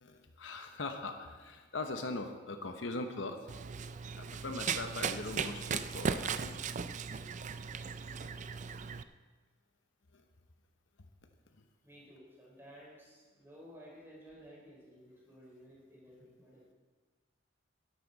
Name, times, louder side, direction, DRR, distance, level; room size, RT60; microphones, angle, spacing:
voice 1, 0.0-3.4 4.2-6.6, left 3 dB, 70° left, 6 dB, 0.9 m, -40 dB
Run, 3.5-9.0, right 6 dB, 40° right, 0.4 m, -37 dB
voice 2, 11.8-16.6, equal, 10° right, -4 dB, 3.9 m, -55 dB
12.0 x 11.5 x 4.0 m, 1.4 s
head